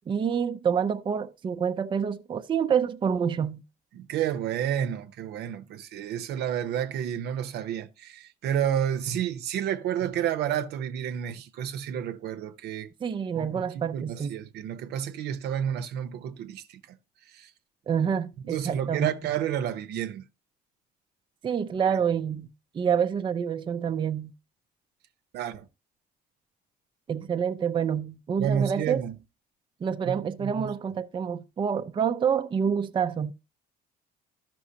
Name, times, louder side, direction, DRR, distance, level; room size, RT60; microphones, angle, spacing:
voice 1, 0.1-3.6 13.0-14.3 17.9-19.1 21.4-22.5 22.7-24.3 27.1-29.0 29.8-33.3, right 7 dB, 30° right, 0.5 m, -27 dB
voice 2, 3.9-12.9 13.3-17.0 17.3-17.5 18.4-20.3 25.3-25.7 28.4-29.2 30.1-30.7, right 9 dB, 75° right, 0.8 m, -30 dB
13.0 x 6.0 x 2.7 m
cardioid pair, 110°, 17 cm